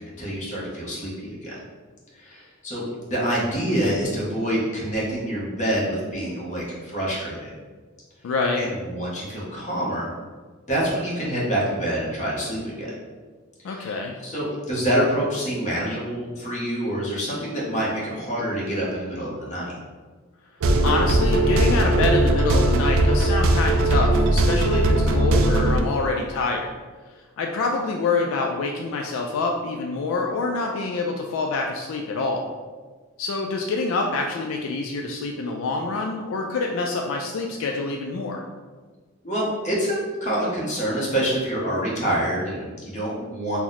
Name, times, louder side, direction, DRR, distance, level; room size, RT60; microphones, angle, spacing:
voice 1, 0.0-1.6 2.1-7.5 8.5-10.1 10.7-12.9 13.6-19.7 39.2-43.6, right 1 dB, 35° left, -6 dB, 0.9 m, -26 dB
voice 2, 8.2-8.7 13.6-14.1 20.8-26.7 27.4-32.5 33.2-38.4, left 3 dB, 80° left, 2 dB, 0.3 m, -26 dB
sound 1, 20.6-25.8, right 1 dB, 85° right, 0.3 m, -19 dB
2.9 x 2.0 x 3.9 m, 1.4 s
head